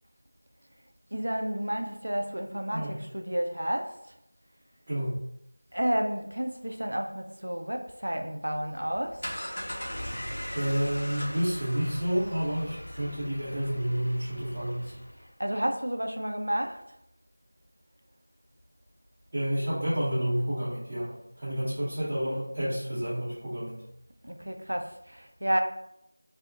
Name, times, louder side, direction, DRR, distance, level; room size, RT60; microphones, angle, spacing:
voice 1, 1.1-3.9 5.7-9.2 15.4-16.8 24.2-25.6, equal, 75° right, 5 dB, 0.4 m, -31 dB
voice 2, 4.9-5.2 10.5-14.9 19.3-23.8, equal, 25° right, -10 dB, 0.5 m, -30 dB
sound 1, 8.9-15.3, equal, 45° left, 0.7 m, -39 dB
2.5 x 2.0 x 3.8 m, 0.80 s
figure-of-eight pair, 175°, 0 cm